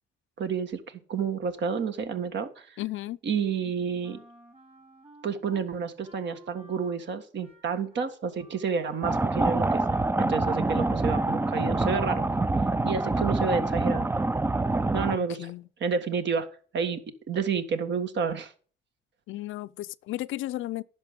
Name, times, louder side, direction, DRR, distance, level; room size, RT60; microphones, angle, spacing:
voice 1, 0.4-2.8 3.2-4.2 5.2-9.8 10.2-12.2 12.8-14.1 14.9-15.5 15.8-16.5 16.7-17.0 17.3-18.5, right 6 dB, 65° right, 1.6 m, -30 dB
voice 2, 2.8-3.2 15.1-15.7 19.3-20.8, left 16 dB, 80° left, 0.5 m, -34 dB
Wind instrument woodwind instrument, 4.0-5.7 6.0-11.4, right 1 dB, 30° right, 2.9 m, -53 dB
sound 1, 9.0-15.2, right 2 dB, 10° right, 0.4 m, -26 dB
10.5 x 6.2 x 5.3 m
cardioid pair, 90°, 20 cm